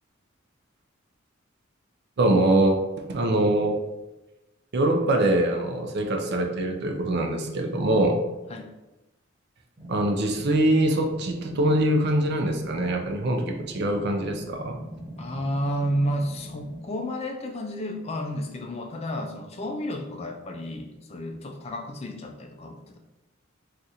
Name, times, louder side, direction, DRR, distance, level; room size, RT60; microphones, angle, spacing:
voice 1, 2.2-2.8 3.1-3.8 4.7-8.2 9.9-14.8, right 1 dB, 55° right, 4 dB, 0.5 m, -23 dB
voice 2, 3.2-3.7 8.5-8.7 15.2-23.0, equal, 30° left, 3 dB, 0.4 m, -31 dB
sound 1, 9.8-16.8, equal, 15° right, 1.0 m, -42 dB
2.5 x 2.5 x 4.1 m, 0.99 s
head